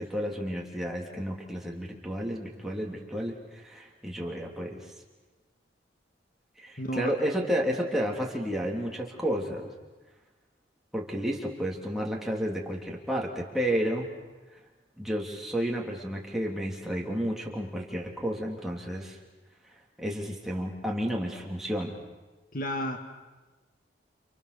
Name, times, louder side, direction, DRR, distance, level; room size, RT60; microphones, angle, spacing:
voice 1, 0.0-4.8 6.6-9.7 10.9-14.1 15.0-19.2 20.0-22.0, equal, ahead, -2 dB, 3.3 m, -31 dB
voice 2, 6.8-7.1 22.5-23.0, equal, 50° left, 5 dB, 1.9 m, -31 dB
29.5 x 29.0 x 6.9 m, 1.2 s
head